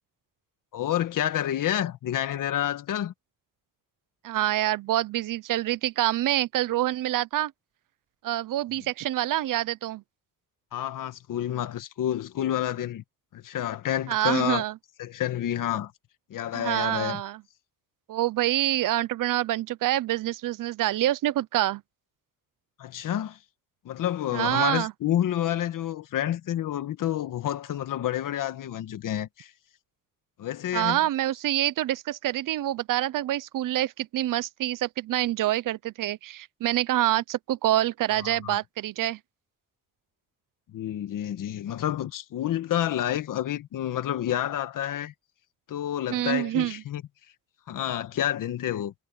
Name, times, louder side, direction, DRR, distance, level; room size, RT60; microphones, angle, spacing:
voice 1, 0.7-3.1 10.7-13.0 13.3-14.6 15.0-15.9 16.3-17.2 22.8-23.4 23.8-29.5 30.4-31.0 38.2-38.6 40.7-45.1 45.7-47.0 47.7-48.9, left 11 dB, 70° left, 1.6 m, -29 dB
voice 2, 4.2-7.5 8.2-10.0 14.1-14.7 16.5-17.4 18.1-21.8 24.3-24.9 30.7-39.2 46.1-46.8, right 14 dB, 70° right, 0.7 m, -26 dB
cardioid pair, 150°, 33 cm